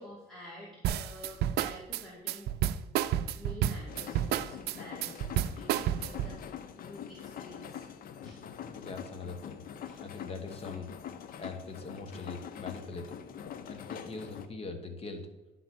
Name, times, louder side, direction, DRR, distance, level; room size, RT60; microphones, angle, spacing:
voice 1, 0.0-2.5 3.3-7.9 8.2-8.4 9.9-10.0, left 1 dB, ahead, -6 dB, 2.4 m, -49 dB
sound 1, 0.8-6.4, right 11 dB, 75° right, 0.4 m, -30 dB
sound 2, 3.9-14.5, left 8 dB, 60° left, 0.7 m, -44 dB
voice 2, 8.6-9.6 9.9-10.9 11.4-13.2 13.7-15.2, left 4 dB, 35° left, 5 dB, 1.4 m, -42 dB
11.0 x 4.0 x 6.0 m, 1.1 s
cardioid pair, 110°, 17 cm